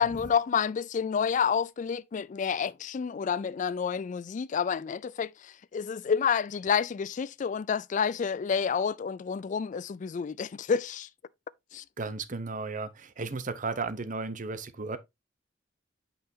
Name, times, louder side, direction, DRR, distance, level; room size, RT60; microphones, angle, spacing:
voice 1, 0.0-11.1 11.7-11.8, left 6 dB, 45° left, 0.3 m, -29 dB
voice 2, 12.0-15.0, right 3 dB, 45° right, 0.8 m, -34 dB
8.6 x 5.6 x 2.7 m
head